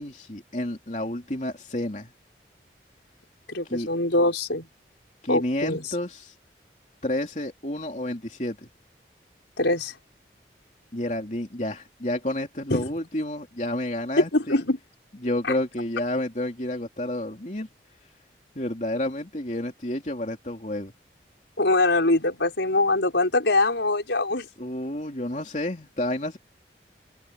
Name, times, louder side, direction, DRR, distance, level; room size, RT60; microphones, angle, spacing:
voice 1, 0.0-2.1 3.7-3.9 5.2-6.3 7.0-8.7 10.9-14.6 15.2-17.7 18.5-20.9 24.6-26.4, left 1 dB, 40° left, 3.2 m, -30 dB
voice 2, 3.5-4.7 5.3-5.9 9.6-9.9 12.7-12.9 14.2-14.8 21.6-24.5, left 2 dB, 90° left, 5.6 m, -23 dB
head